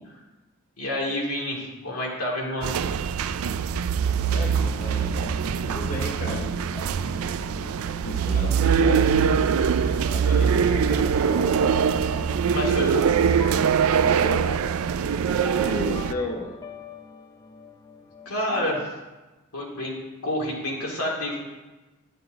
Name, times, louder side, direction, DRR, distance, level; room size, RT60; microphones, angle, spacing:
voice 1, 0.8-2.7 12.5-13.2 18.3-18.9 19.5-19.9 20.2-21.4, left 1 dB, 90° left, -3 dB, 2.5 m, -28 dB
sound 1, 2.6-16.1, right 7 dB, 70° right, 0.4 m, -23 dB
voice 2, 4.2-5.1 5.7-6.5 8.0-9.2 9.7-11.1 14.0-14.6 15.6-16.6, left 1 dB, 40° left, 0 dB, 0.9 m, -34 dB
sound 2, 4.8-18.7, left 2 dB, 15° left, 0.4 m, -42 dB
11.5 x 6.5 x 4.0 m, 1.2 s
head